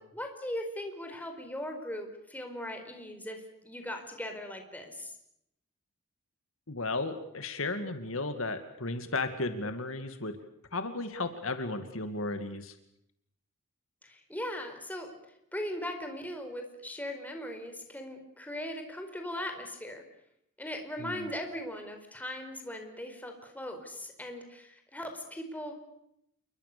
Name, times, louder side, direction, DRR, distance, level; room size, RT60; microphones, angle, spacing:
voice 1, 0.1-5.1 14.0-15.1 15.5-20.0 20.6-25.8, left 1 dB, 10° left, 5 dB, 4.7 m, -39 dB
voice 2, 6.7-10.4 10.7-12.8 21.0-21.3, left 2 dB, 65° left, 9 dB, 2.3 m, -34 dB
29.0 x 23.0 x 6.9 m, 0.77 s
head